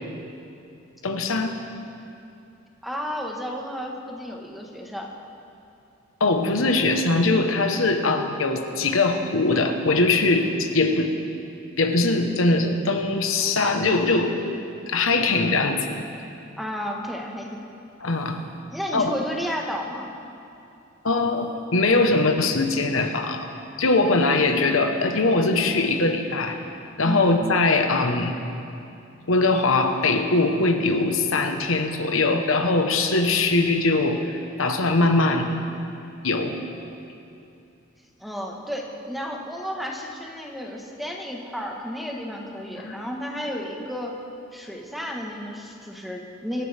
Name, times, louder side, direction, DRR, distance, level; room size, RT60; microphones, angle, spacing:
voice 1, 1.0-1.6 6.2-11.1 11.8-14.3 14.9-15.8 18.0-18.4 18.9-19.1 21.0-23.5 23.8-26.6 27.0-28.3 29.3-35.6 36.2-36.6 42.8-43.0, left 3 dB, 85° left, 5 dB, 1.1 m, -21 dB
voice 2, 2.8-5.1 16.6-17.7 18.7-20.1 27.0-27.2 38.2-44.2 44.5-46.7, equal, ahead, 0 dB, 1.4 m, -32 dB
25.5 x 11.0 x 3.5 m, 2.7 s
head